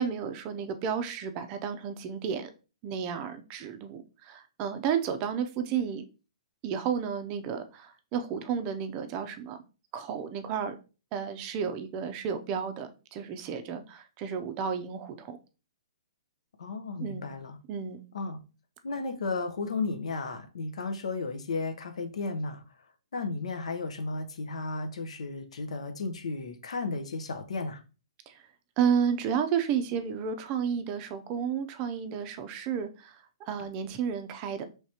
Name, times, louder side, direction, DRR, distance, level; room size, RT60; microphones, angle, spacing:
voice 1, 0.0-2.5 2.8-6.0 6.6-9.6 9.9-10.8 11.1-15.4 17.0-17.3 17.7-18.0 28.3-28.4 28.8-34.6, right 7 dB, 25° right, 0.4 m, -32 dB
voice 2, 16.6-17.6 18.1-18.4 18.8-22.6 23.1-27.8, left 3 dB, 85° left, 0.8 m, -34 dB
4.7 x 3.3 x 2.8 m
hypercardioid pair, 165°, 3 cm